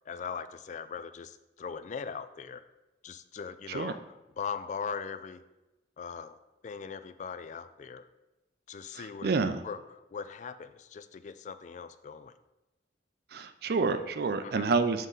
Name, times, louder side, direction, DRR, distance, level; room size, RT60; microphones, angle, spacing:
voice 1, 0.0-2.6 3.0-5.4 6.0-6.4 6.6-8.1 8.7-12.3 14.4-14.7, left 6 dB, 45° left, 12 dB, 0.3 m, -40 dB
voice 2, 8.9-9.6 13.3-15.1, right 4 dB, 60° right, 10 dB, 0.4 m, -28 dB
7.3 x 3.6 x 3.9 m, 1.0 s
head